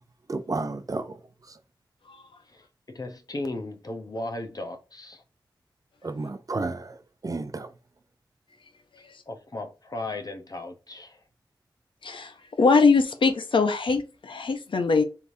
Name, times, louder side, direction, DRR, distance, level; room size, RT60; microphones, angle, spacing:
voice 1, 0.3-1.2 6.0-7.0 7.2-7.7, right 3 dB, 45° right, 0.5 m, -31 dB
voice 2, 2.5-5.2 9.3-11.2, left 2 dB, 50° left, 0.9 m, -36 dB
voice 3, 12.6-15.0, left 4 dB, 90° left, 0.7 m, -21 dB
4.6 x 3.5 x 2.7 m
wide cardioid pair, 80°, 8 cm